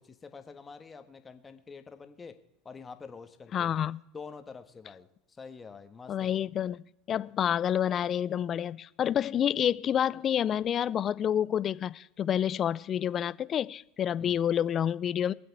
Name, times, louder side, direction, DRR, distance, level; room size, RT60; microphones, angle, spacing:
voice 1, 0.0-2.4 2.6-3.7 4.1-6.3 14.2-14.4, left 5 dB, 20° left, 1.4 m, -47 dB
voice 2, 3.5-4.0 6.1-6.8 7.1-15.3, left 9 dB, 35° left, 0.4 m, -28 dB
23.0 x 7.7 x 4.7 m
supercardioid pair, 105°, 0 cm